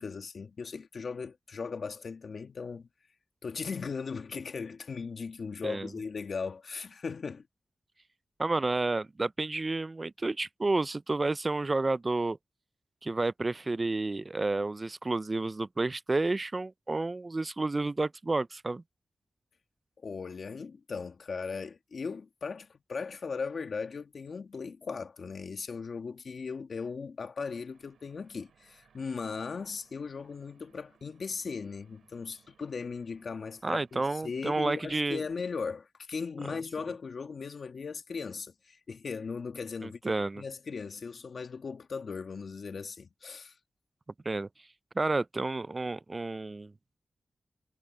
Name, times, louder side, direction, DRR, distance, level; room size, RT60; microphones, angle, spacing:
voice 1, 0.0-2.9 3.4-7.4 20.0-43.6, left 5 dB, 70° left, 1.8 m, -38 dB
voice 2, 8.4-12.4 13.0-18.8 33.6-35.2 39.8-40.4 44.3-44.5 45.0-46.7, right 3 dB, 35° right, 0.4 m, -30 dB
sound 1, 27.7-34.5, right 7 dB, 90° right, 5.5 m, -66 dB
cardioid pair, 50°, 0 cm